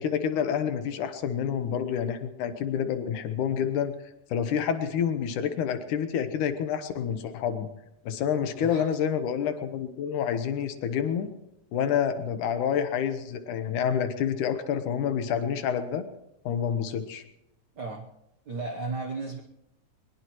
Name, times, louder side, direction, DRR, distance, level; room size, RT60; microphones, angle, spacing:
voice 1, 0.0-3.9 4.3-7.7 8.0-11.3 11.7-16.0 16.5-17.2, left 8 dB, 80° left, 9 dB, 2.7 m, -28 dB
voice 2, 17.7-18.1 18.5-19.4, right 3 dB, 80° right, 4 dB, 0.9 m, -34 dB
22.0 x 20.5 x 3.1 m, 0.90 s
omnidirectional pair, 3.6 m